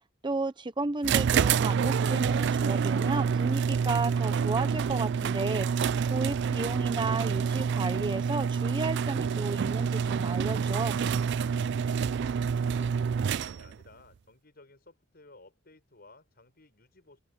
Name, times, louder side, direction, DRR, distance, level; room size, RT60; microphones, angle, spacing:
voice 1, 0.2-5.7 6.1-11.0, right 3 dB, 25° right, 0.7 m, -33 dB
sound 1, 1.0-13.8, right 6 dB, 60° right, 0.4 m, -27 dB
voice 2, 11.4-17.2, left 2 dB, 50° left, 6.4 m, -56 dB
head